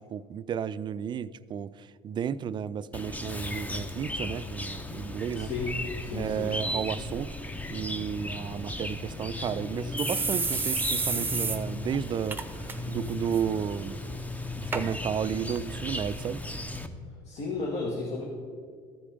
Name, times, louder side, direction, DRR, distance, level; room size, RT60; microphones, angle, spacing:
voice 1, 0.0-5.5 6.1-7.4 7.7-12.4 12.9-14.0 14.6-16.4, right 8 dB, 35° right, 16 dB, 0.3 m, -32 dB
Chirp tweet, 2.9-16.9, left 1 dB, 10° left, 0.7 m, -36 dB
voice 2, 5.4-5.7 6.0-6.5 17.3-18.2, left 3 dB, 55° left, -2 dB, 1.6 m, -33 dB
sound 1, 9.0-9.1 9.5-9.6 10.0-11.6 11.9-12.0 12.3-12.7 13.1-13.4 14.1-14.2 14.7-14.8 15.6-15.7, right 4 dB, 15° right, 0.8 m, -30 dB
14.0 x 5.0 x 5.0 m, 2.1 s
supercardioid pair, 85°, 13 cm